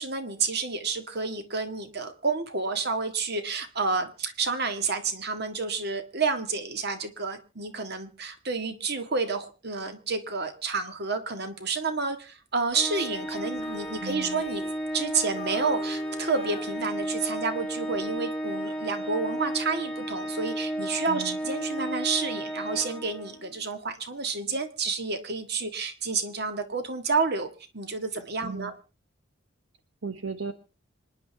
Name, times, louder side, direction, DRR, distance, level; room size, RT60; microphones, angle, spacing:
voice 1, 0.0-14.6 14.9-27.5 27.7-28.7, right 4 dB, 55° right, 8 dB, 1.7 m, -30 dB
Organ, 12.7-23.5, right 1 dB, 5° left, 1.4 m, -33 dB
Female singing, 12.8-15.1 15.4-17.4 17.9-18.2, left 4 dB, 30° left, 0.8 m, -45 dB
voice 2, 14.0-14.4 21.1-21.4 28.4-28.7 30.0-30.5, right 5 dB, 80° right, 9 dB, 1.0 m, -36 dB
26.5 x 10.5 x 3.4 m, 0.34 s
head